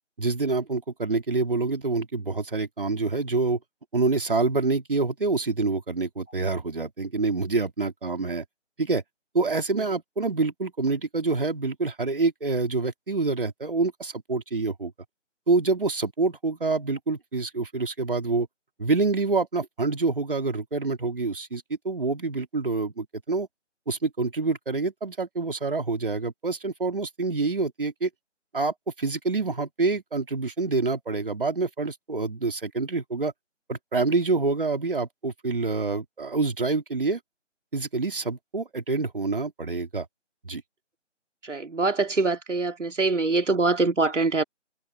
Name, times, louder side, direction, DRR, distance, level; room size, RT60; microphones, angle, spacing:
voice 1, 0.2-3.6 3.9-8.4 8.8-9.0 9.3-14.9 15.5-18.5 18.8-23.5 23.9-28.1 28.5-33.3 33.7-37.2 37.7-40.1 40.4-40.6, right 3 dB, 45° right, 3.3 m, -26 dB
voice 2, 41.4-44.4, right 3 dB, 75° right, 2.9 m, -24 dB
figure-of-eight pair, 180°, 37 cm